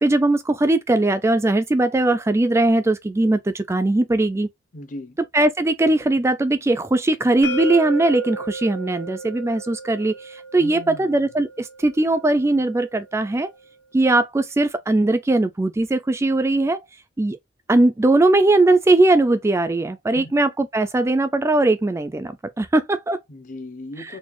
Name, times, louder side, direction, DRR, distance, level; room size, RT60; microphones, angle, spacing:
voice 1, 0.0-4.5 5.3-13.5 13.9-16.8 17.2-17.4 17.7-23.2 24.0-24.1, right 2 dB, 15° right, 0.3 m, -19 dB
voice 2, 4.7-5.2 10.6-11.2 20.1-20.4 23.3-24.2, left 1 dB, 45° left, 0.7 m, -37 dB
sound 1, 7.4-13.2, right 2 dB, 75° left, 0.9 m, -34 dB
4.1 x 2.3 x 3.0 m
head